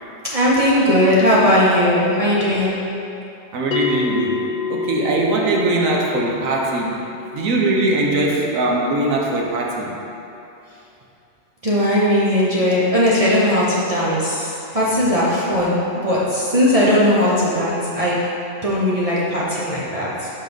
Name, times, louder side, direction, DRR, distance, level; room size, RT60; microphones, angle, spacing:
voice 1, 0.3-2.8 11.6-18.2 18.6-20.3, left 1 dB, 30° right, -8 dB, 0.9 m, -18 dB
voice 2, 3.5-7.0 7.3-10.0, right 2 dB, 90° right, -1 dB, 1.3 m, -21 dB
Bell, 3.7-8.8, left 5 dB, 60° left, 0.5 m, -29 dB
6.1 x 4.4 x 5.2 m, 2.8 s
omnidirectional pair, 1.4 m